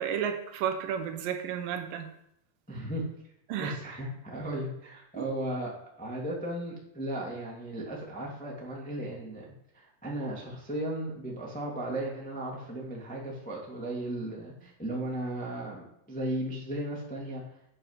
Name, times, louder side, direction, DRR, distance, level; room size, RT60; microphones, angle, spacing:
voice 1, 0.0-2.1 3.5-3.8 5.2-5.3, right 8 dB, 75° right, 6 dB, 2.5 m, -32 dB
voice 2, 2.7-3.0 3.6-9.4 9.7-17.4, right 1 dB, 5° left, -3 dB, 0.5 m, -36 dB
8.9 x 5.6 x 5.6 m, 0.75 s
omnidirectional pair, 4.2 m